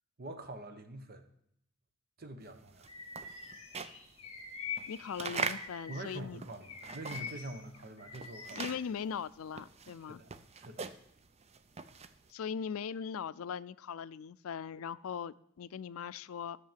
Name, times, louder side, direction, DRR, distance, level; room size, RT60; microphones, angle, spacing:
voice 1, 0.2-1.3 2.2-2.9 5.9-8.6 10.1-10.3 10.6-10.9, right 1 dB, 45° right, 1.2 m, -45 dB
sound 1, 2.5-7.6 7.8-12.3, right 5 dB, 30° right, 0.6 m, -42 dB
Bird vocalization bird call bird song, 2.9-6.2 6.6-8.8, left 6 dB, 30° left, 1.9 m, -45 dB
voice 2, 4.9-6.4 8.5-10.2 12.3-16.6, left 7 dB, 90° left, 0.4 m, -40 dB
sound 2, 5.2-8.1, left 2 dB, 5° left, 3.5 m, -70 dB
12.5 x 6.6 x 7.4 m
head